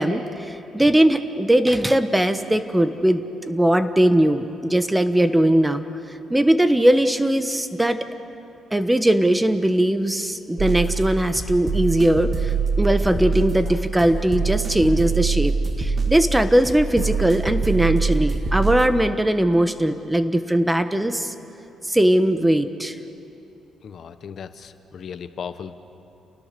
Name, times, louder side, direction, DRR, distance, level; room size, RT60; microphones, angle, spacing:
voice 1, 0.0-5.8 6.3-8.0 8.7-21.3 21.9-23.0, right 1 dB, 10° right, 10 dB, 1.2 m, -20 dB
sound 1, 10.6-18.9, right 4 dB, 40° right, 1.9 m, -24 dB
voice 2, 23.8-25.7, left 7 dB, 55° left, 11 dB, 1.0 m, -36 dB
29.5 x 19.5 x 6.8 m, 2.9 s
cardioid pair, 90°, 0 cm